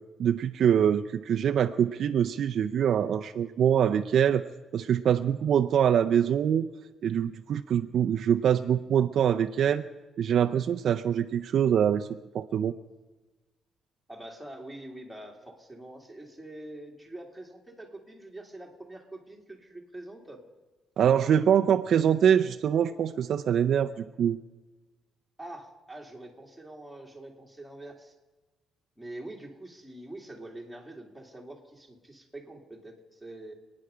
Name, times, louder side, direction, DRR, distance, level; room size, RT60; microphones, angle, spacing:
voice 1, 0.2-6.6 7.0-9.8 10.2-12.1 12.3-12.7 21.0-23.9 24.2-24.4, right 9 dB, 55° right, 6 dB, 0.5 m, -24 dB
voice 2, 14.1-20.4 25.4-28.1 29.0-33.5, right 1 dB, ahead, -1 dB, 2.2 m, -45 dB
27.5 x 9.7 x 5.0 m, 1.2 s
cardioid pair, 175°, 0 cm